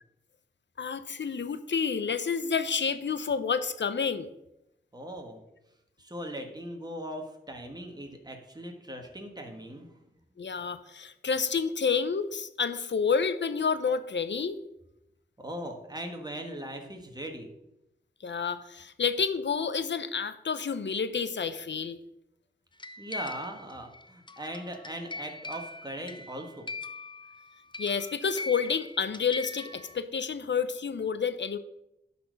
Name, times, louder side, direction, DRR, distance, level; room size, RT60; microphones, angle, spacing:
voice 1, 0.8-4.3 10.4-14.6 18.2-22.0 27.8-31.6, left 6 dB, 70° left, 12 dB, 0.7 m, -29 dB
voice 2, 4.9-5.4 6.0-10.0 15.4-17.5 23.0-26.7, right 1 dB, 20° right, 3 dB, 1.7 m, -39 dB
sound 1, 22.8-30.0, left 2 dB, 25° left, 0.5 m, -42 dB
11.5 x 4.3 x 5.2 m, 0.84 s
wide cardioid pair, 65°, 19 cm